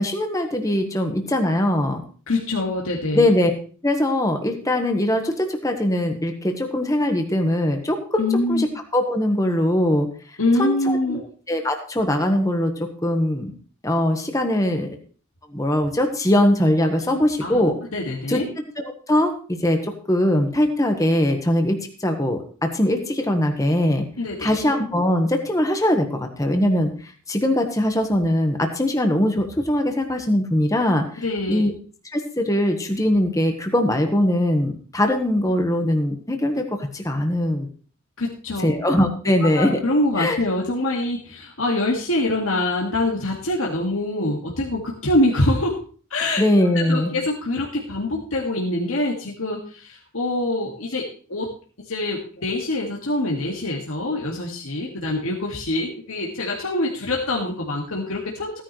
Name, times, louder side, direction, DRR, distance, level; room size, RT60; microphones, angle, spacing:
voice 1, 0.0-2.0 3.1-3.5 3.8-10.1 10.6-11.2 11.5-12.7 13.0-13.5 13.8-15.0 15.5-17.8 18.3-18.4 18.8-24.0 24.4-31.2 31.5-31.7 32.1-36.6 36.9-37.7 38.6-39.8 40.2-40.4 46.4-47.1, left 1 dB, 15° left, 5 dB, 1.3 m, -21 dB
voice 2, 2.3-3.3 8.2-8.7 10.4-11.2 17.1-17.6 17.9-18.5 24.2-24.6 31.2-31.6 38.2-38.7 39.6-45.8 46.1-46.4 46.7-51.5 51.8-58.6, left 1 dB, 70° left, -2 dB, 2.0 m, -24 dB
16.0 x 10.0 x 3.2 m, 0.40 s
head